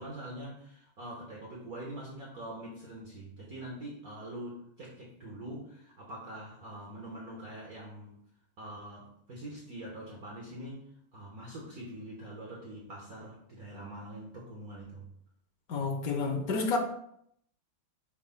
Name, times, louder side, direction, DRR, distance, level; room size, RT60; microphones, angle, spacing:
voice 1, 0.0-8.1 8.6-15.1, right 1 dB, 50° right, 1.5 m, -44 dB
voice 2, 15.7-16.8, left 4 dB, 70° left, 0.9 m, -30 dB
9.3 x 6.4 x 2.2 m
omnidirectional pair, 2.4 m